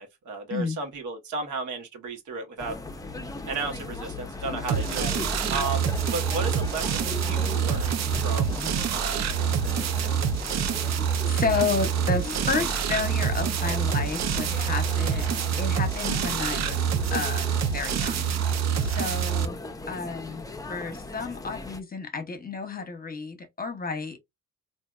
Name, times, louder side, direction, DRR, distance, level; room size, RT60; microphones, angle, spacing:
voice 1, 0.0-2.8 3.5-5.1 5.5-10.3, right 3 dB, 75° right, 1.3 m, -34 dB
sound 1, 2.6-21.8, left 3 dB, 10° left, 0.6 m, -38 dB
sound 2, 4.7-19.5, right 8 dB, 60° right, 0.6 m, -26 dB
voice 2, 10.8-16.8 17.1-18.5 18.8-19.6 19.9-24.2, left 4 dB, 30° left, 0.9 m, -31 dB
3.4 x 2.6 x 2.4 m
cardioid pair, 90°, 30 cm